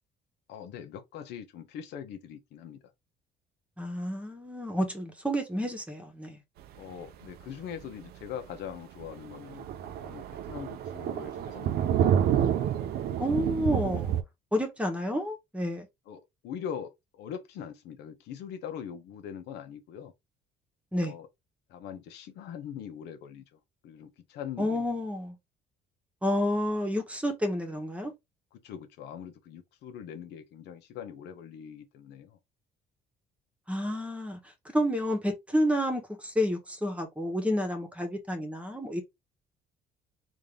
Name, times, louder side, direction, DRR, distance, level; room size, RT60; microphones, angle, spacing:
voice 1, 0.5-2.8 6.8-9.7 10.0-12.3 16.1-20.1 20.9-21.3 21.7-23.4 23.8-24.8 28.6-32.4, left 8 dB, 80° left, 0.9 m, -42 dB
voice 2, 3.8-6.4 13.2-14.1 14.5-15.9 20.9-21.1 24.6-25.4 26.2-28.1 33.7-34.4 34.7-39.0, equal, 5° right, 1.1 m, -30 dB
Thunder, 7.2-7.4 7.8-7.9 8.3-8.4 8.7-8.8 9.0-14.2, right 10 dB, 70° right, 0.6 m, -28 dB
3.7 x 2.7 x 3.3 m
cardioid pair, 110°, 17 cm